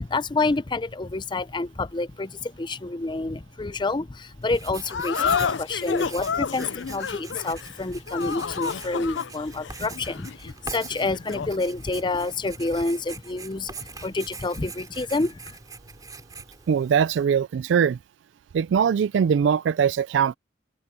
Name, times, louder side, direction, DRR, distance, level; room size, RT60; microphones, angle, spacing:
voice 1, 0.0-15.6, left 3 dB, 25° left, 0.6 m, -28 dB
Writing, 4.4-17.3, right 4 dB, 20° right, 3.6 m, -43 dB
sound 1, 4.9-11.6, left 6 dB, 80° left, 0.5 m, -30 dB
voice 2, 16.7-18.0 18.5-20.3, right 7 dB, 80° right, 0.3 m, -21 dB
open air
head